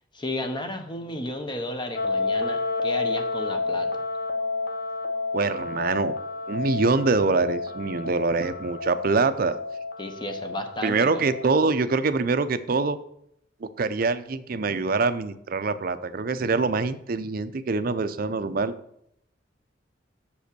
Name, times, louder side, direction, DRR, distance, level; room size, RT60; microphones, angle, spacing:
voice 1, 0.1-3.9 10.0-11.3, left 1 dB, 25° left, 6 dB, 0.9 m, -33 dB
sound 1, 2.0-11.6, left 3 dB, 55° left, 0.9 m, -30 dB
voice 2, 5.3-6.2 6.5-9.6 10.8-13.0 13.6-18.7, right 4 dB, 50° right, 12 dB, 0.5 m, -24 dB
7.0 x 5.2 x 6.7 m, 0.74 s
head